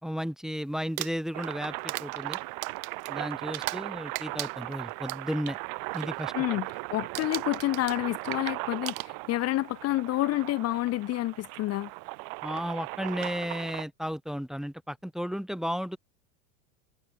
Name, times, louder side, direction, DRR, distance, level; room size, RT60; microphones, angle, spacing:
voice 1, 0.0-2.4 3.1-5.6 5.9-6.6 12.4-16.0, equal, ahead, 1.6 m, -34 dB
Crumpling crinkling, 0.8-3.9 4.1-5.6 5.9-6.2 6.5-6.8 7.1-9.5 10.5-10.6 12.6-12.7 13.1-13.4, right 18 dB, 80° right, 1.0 m, -38 dB
sound 1, 1.3-13.8, right 29 dB, 55° right, 4.9 m, -38 dB
voice 2, 6.3-11.9, left 16 dB, 35° left, 1.0 m, -29 dB
supercardioid pair, 120°, 42 cm